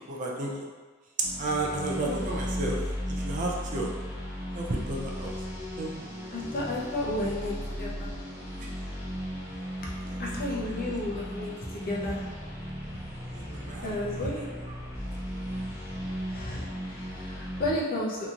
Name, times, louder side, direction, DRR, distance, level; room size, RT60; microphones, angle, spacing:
voice 1, 0.1-0.7 1.4-2.8 3.1-3.9 4.5-5.3 5.8-6.1 10.5-10.9 13.3-13.9 14.2-14.3, right 2 dB, 35° right, -2 dB, 0.4 m, -32 dB
sound 1, 1.2-17.7, equal, 15° right, 0.8 m, -36 dB
voice 2, 6.3-8.1 9.8-9.9 10.2-12.2 12.9-13.0 13.8-14.4 16.2-18.3, left 1 dB, 45° left, -4 dB, 0.6 m, -32 dB
2.9 x 2.7 x 2.4 m, 1.4 s
head